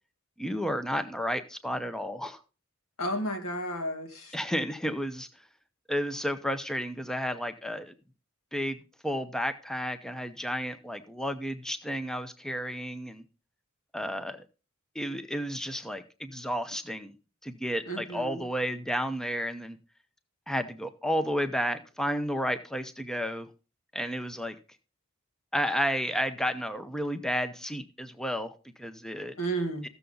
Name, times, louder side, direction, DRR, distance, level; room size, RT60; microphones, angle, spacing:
voice 1, 0.4-2.4 4.3-5.3 5.9-7.9 8.5-8.8 9.0-13.2 13.9-14.4 15.0-17.1 17.4-19.8 20.5-23.5 23.9-24.6 25.5-29.3 29.8-29.9, equal, 5° left, 9 dB, 0.6 m, -32 dB
voice 2, 3.0-4.4 17.9-18.4 29.4-29.9, right 1 dB, 85° left, 3 dB, 2.4 m, -32 dB
15.0 x 6.8 x 3.8 m, 0.33 s
head